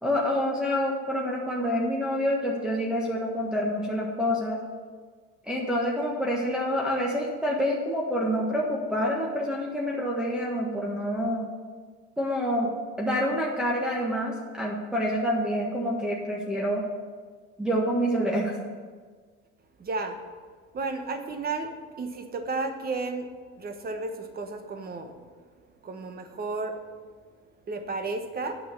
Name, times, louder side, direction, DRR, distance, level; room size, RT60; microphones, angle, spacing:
voice 1, 0.0-4.6 5.4-11.5 12.2-16.8 17.6-18.5, equal, 5° right, -4 dB, 1.5 m, -27 dB
voice 2, 19.8-20.2 20.7-21.7 22.0-23.3 23.6-25.1 25.8-26.8 27.7-28.6, right 3 dB, 30° right, 7 dB, 1.2 m, -32 dB
8.3 x 6.3 x 7.5 m, 1.5 s
supercardioid pair, 105°, 30 cm